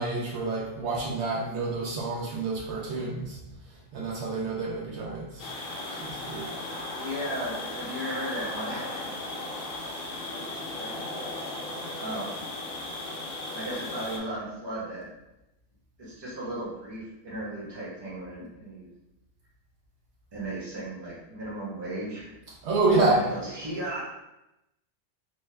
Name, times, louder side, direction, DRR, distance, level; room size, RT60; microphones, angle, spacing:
voice 1, 0.0-3.4 3.9-5.5 6.0-6.5 22.6-23.2, right 3 dB, 70° right, -2 dB, 0.8 m, -28 dB
sound 1, 5.4-14.2, left 2 dB, 60° left, 0.7 m, -36 dB
voice 2, 7.0-9.2 10.3-10.4 10.8-11.0 12.0-12.4 13.5-15.1 16.0-18.9 20.3-22.3 23.0-24.0, right 1 dB, 25° right, -6 dB, 0.8 m, -36 dB
3.1 x 2.1 x 3.2 m, 0.92 s
omnidirectional pair, 1.2 m